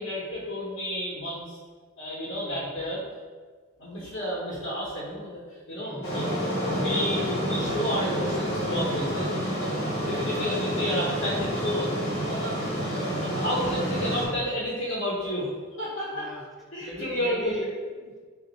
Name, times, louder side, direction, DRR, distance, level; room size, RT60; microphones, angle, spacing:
voice 1, 0.0-1.6 2.0-3.0 3.8-5.4 5.7-9.3 9.6-12.0 12.3-12.7 13.2-15.4 15.8-16.3 16.7-17.5, equal, 85° left, -8 dB, 1.0 m, -31 dB
voice 2, 2.4-2.7 5.8-6.1 10.1-10.6 12.6-12.9 16.1-16.4 16.8-18.2, equal, ahead, -3 dB, 0.4 m, -40 dB
sound 1, 6.0-14.3, equal, 60° left, 1.0 m, -29 dB
3.2 x 2.5 x 3.9 m, 1.5 s
head